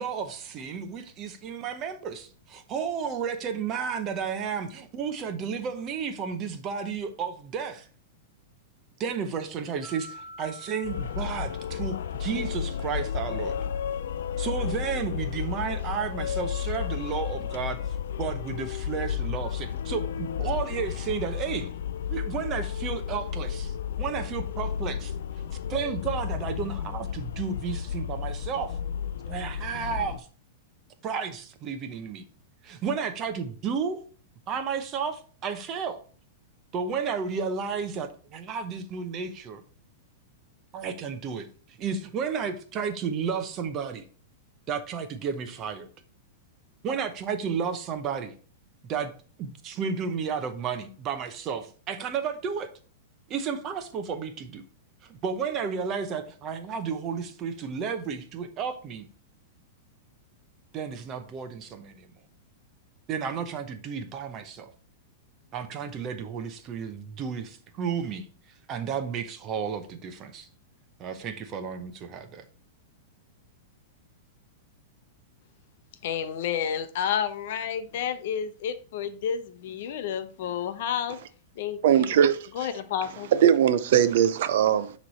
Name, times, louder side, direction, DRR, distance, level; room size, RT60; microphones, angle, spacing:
voice 1, 0.0-7.9 9.0-13.6 14.4-21.7 22.1-25.1 25.7-28.8 29.3-30.3 31.0-32.2 32.6-34.0 34.5-36.0 36.7-39.6 40.7-44.0 44.7-45.9 46.8-48.3 48.8-49.1 49.4-52.7 53.3-54.6 55.0-59.1 60.7-62.1 63.1-64.7 65.5-68.3 68.7-70.5 71.0-72.4, right 6 dB, 30° right, 0.7 m, -32 dB
sound 1, 9.8-13.7, equal, 15° left, 1.9 m, -48 dB
sound 2, 10.8-30.2, left 8 dB, 80° left, 0.4 m, -32 dB
voice 2, 76.0-81.2 81.6-82.1 82.5-83.3, left 8 dB, 60° left, 0.7 m, -30 dB
voice 3, 81.8-82.4 83.4-84.9, right 9 dB, 65° right, 0.6 m, -20 dB
9.4 x 3.2 x 4.1 m
supercardioid pair, 150°, 0 cm